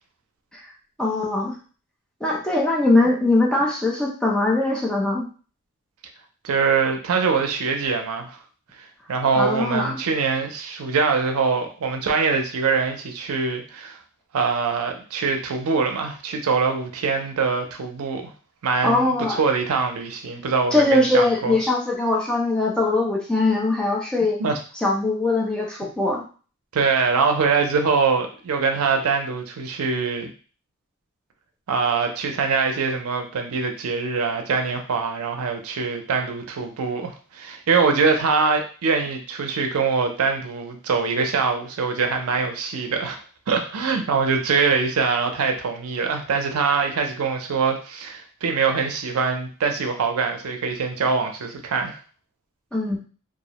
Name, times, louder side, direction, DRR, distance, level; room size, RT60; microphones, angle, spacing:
voice 1, 1.0-1.5 2.2-5.3 9.4-9.9 18.8-19.4 20.7-24.4 24.8-26.2 52.7-53.0, left 2 dB, 5° left, -3 dB, 0.5 m, -21 dB
voice 2, 6.4-8.4 9.1-14.0 14.3-18.2 18.6-21.6 24.4-24.6 26.7-30.3 31.7-43.2 43.5-52.0, right 5 dB, 80° right, 4 dB, 0.5 m, -23 dB
2.3 x 2.0 x 2.8 m, 0.38 s
head